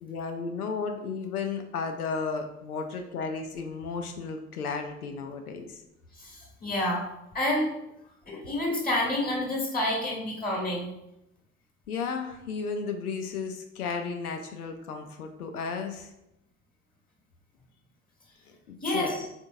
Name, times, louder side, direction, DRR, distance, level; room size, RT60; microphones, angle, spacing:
voice 1, 0.0-5.8 11.9-16.1 18.7-19.2, left 5 dB, 80° left, 5 dB, 0.6 m, -34 dB
voice 2, 6.2-7.0 7.3-7.7 8.3-10.9 18.8-19.2, left 1 dB, 20° left, -1 dB, 1.4 m, -28 dB
4.1 x 3.5 x 2.6 m, 0.85 s
figure-of-eight pair, 65°, 44 cm